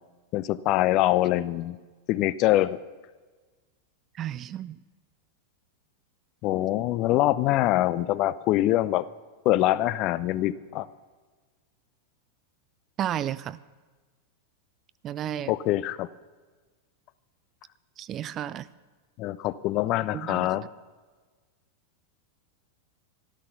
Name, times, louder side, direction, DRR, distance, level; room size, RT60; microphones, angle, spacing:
voice 1, 0.3-1.8 2.1-2.8 6.4-9.0 9.5-10.9 15.5-16.1 19.2-20.6, left 15 dB, 40° left, 17 dB, 0.5 m, -24 dB
voice 2, 4.2-4.8 13.0-13.6 15.0-15.5 18.0-18.7 20.1-20.5, right 11 dB, 30° right, 17 dB, 0.4 m, -32 dB
13.5 x 13.0 x 5.7 m, 1.4 s
figure-of-eight pair, 90°, 0 cm